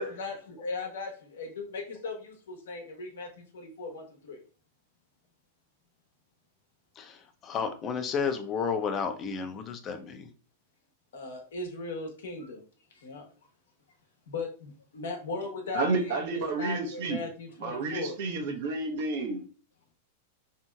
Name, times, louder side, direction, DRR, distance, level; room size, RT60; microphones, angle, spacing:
voice 1, 0.2-4.4 11.1-12.6 12.9-13.2 14.3-18.2, left 3 dB, 80° left, 2 dB, 0.9 m, -38 dB
voice 2, 7.0-10.3, left 6 dB, 35° left, 7 dB, 0.5 m, -32 dB
voice 3, 15.7-17.2 17.6-19.4, right 3 dB, 65° right, 1 dB, 0.7 m, -30 dB
2.9 x 2.7 x 2.2 m, 0.41 s
hypercardioid pair, 110°, 0 cm